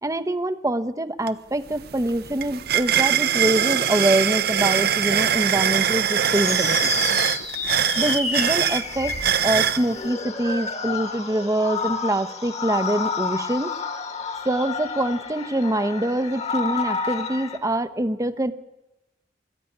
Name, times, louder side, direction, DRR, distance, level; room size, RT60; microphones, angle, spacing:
voice 1, 0.0-6.9 8.0-9.1 9.4-13.7 14.4-18.5, right 1 dB, 20° right, 10 dB, 0.9 m, -24 dB
sound 1, 1.3-1.4 1.7-9.8, right 9 dB, 60° right, 0.8 m, -22 dB
sound 2, 6.3-17.6, left 5 dB, 40° left, 2.2 m, -30 dB
22.5 x 13.5 x 9.9 m, 0.98 s
head